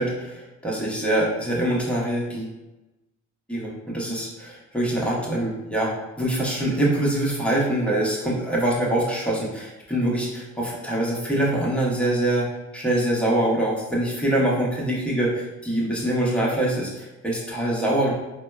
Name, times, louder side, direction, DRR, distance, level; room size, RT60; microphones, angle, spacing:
voice 1, 0.0-2.5 3.5-12.5 12.7-18.1, right 1 dB, 5° left, -5 dB, 0.9 m, -24 dB
4.2 x 2.1 x 2.2 m, 1.0 s
cardioid pair, 90°, 30 cm